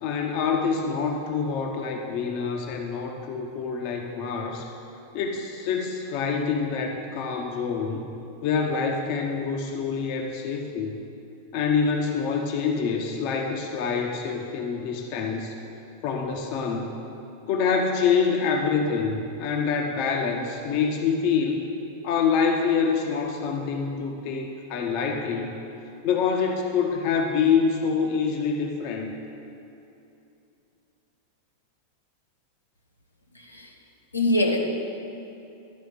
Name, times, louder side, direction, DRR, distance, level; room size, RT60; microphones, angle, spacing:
voice 1, 0.0-4.7 5.1-8.1 8.4-11.0 11.5-15.6 16.0-16.9 17.5-21.6 22.0-25.5 26.0-29.1, left 5 dB, 45° left, 2 dB, 0.8 m, -26 dB
voice 2, 33.3-33.7 34.1-34.6, left 1 dB, 80° left, 0 dB, 1.0 m, -23 dB
11.5 x 5.0 x 6.5 m, 2.8 s
figure-of-eight pair, 90°, 0 cm